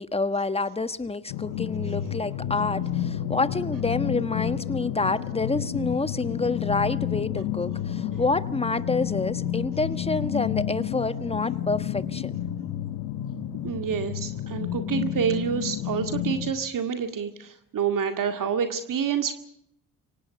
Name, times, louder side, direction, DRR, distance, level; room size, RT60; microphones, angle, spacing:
voice 1, 0.0-12.3, left 3 dB, 15° left, 12 dB, 1.5 m, -28 dB
sound 1, 1.3-16.5, left 10 dB, 85° left, 1.3 m, -30 dB
voice 2, 13.6-19.3, right 7 dB, 60° right, 7 dB, 2.1 m, -28 dB
24.5 x 18.5 x 7.9 m, 0.69 s
supercardioid pair, 70°, 37 cm